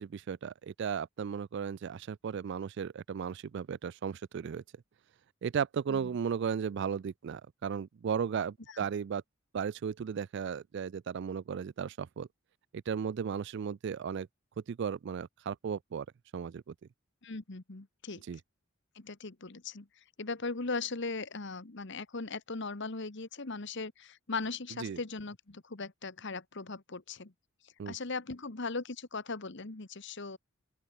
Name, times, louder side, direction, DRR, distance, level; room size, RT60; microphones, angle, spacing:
voice 1, 0.0-4.6 5.4-9.2 9.5-12.3 12.7-14.3 14.7-16.1 16.3-16.7 18.3-18.4 24.8-25.0 27.8-27.9, right 7 dB, 55° right, 0.3 m, -35 dB
voice 2, 17.2-18.2 18.9-19.9 20.2-27.3 27.9-30.4, left 3 dB, 55° left, 1.3 m, -39 dB
open air
head